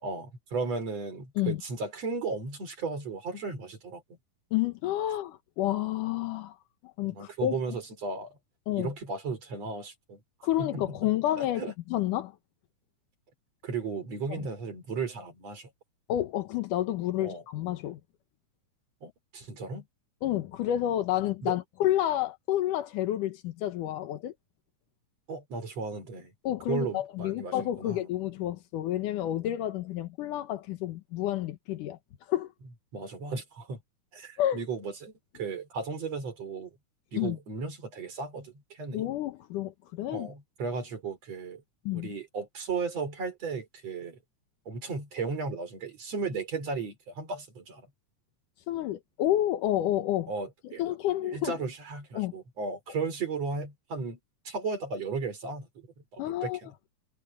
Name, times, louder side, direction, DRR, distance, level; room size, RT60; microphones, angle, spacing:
voice 1, 0.0-4.0 7.0-8.4 8.7-10.2 10.6-11.1 11.4-11.7 13.6-15.7 17.2-17.4 19.0-19.9 21.4-21.5 25.3-26.3 26.7-28.1 32.9-33.8 34.1-36.7 37.1-39.1 40.1-41.6 41.9-44.2 44.7-47.8 50.3-50.8 51.2-54.2 54.5-55.9 56.1-56.7, right 4 dB, 50° right, 5.7 m, -35 dB
voice 2, 4.5-6.6 6.8-7.6 8.7-8.9 10.4-11.6 11.9-12.3 14.3-14.5 16.1-18.0 20.2-24.3 26.4-32.0 32.3-32.5 34.4-34.6 37.2-37.4 38.9-40.3 41.9-42.1 48.7-50.3 50.6-51.6 52.2-52.3 56.2-56.6, left 13 dB, 85° left, 2.6 m, -30 dB
omnidirectional pair, 3.7 m